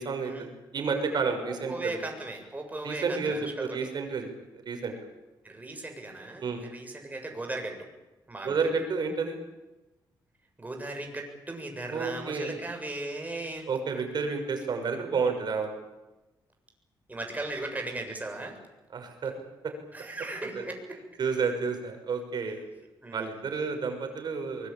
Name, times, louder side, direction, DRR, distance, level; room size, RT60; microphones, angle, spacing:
voice 1, 0.0-2.1 2.8-4.3 4.6-4.9 6.4-6.7 8.4-9.4 11.9-12.6 13.7-15.7 18.9-19.3 20.5-20.6 21.2-22.6 23.1-24.7, right 5 dB, 60° right, 5 dB, 6.4 m, -30 dB
voice 2, 1.4-3.9 5.4-7.9 8.3-8.7 10.6-13.7 17.1-18.5 19.9-21.0 23.0-23.4, right 2 dB, 20° right, 3 dB, 7.3 m, -37 dB
24.0 x 21.5 x 8.9 m, 1.1 s
cardioid pair, 85°, 8 cm